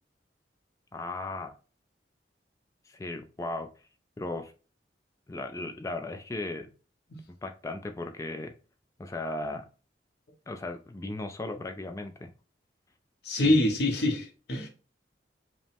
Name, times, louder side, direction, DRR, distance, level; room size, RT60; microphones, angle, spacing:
voice 1, 0.9-1.5 2.9-3.7 4.2-4.5 5.3-6.7 7.4-8.5 9.0-9.7 10.5-12.3 13.4-13.6, left 2 dB, 20° left, 0.3 m, -36 dB
voice 2, 13.2-14.7, left 1 dB, 65° left, 1.0 m, -25 dB
5.1 x 2.1 x 3.4 m
head